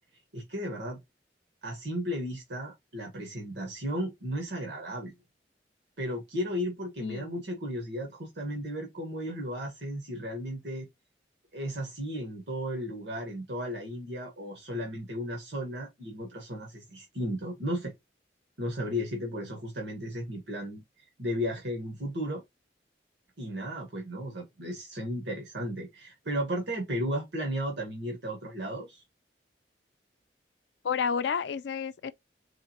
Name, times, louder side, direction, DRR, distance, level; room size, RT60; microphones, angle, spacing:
voice 1, 0.3-1.0 1.6-5.1 6.0-10.9 11.5-17.9 18.6-20.8 21.2-22.4 23.4-29.0, equal, 80° right, 1.4 m, -34 dB
voice 2, 7.0-7.4 30.8-32.1, left 6 dB, 80° left, 0.4 m, -30 dB
3.9 x 3.5 x 2.9 m
head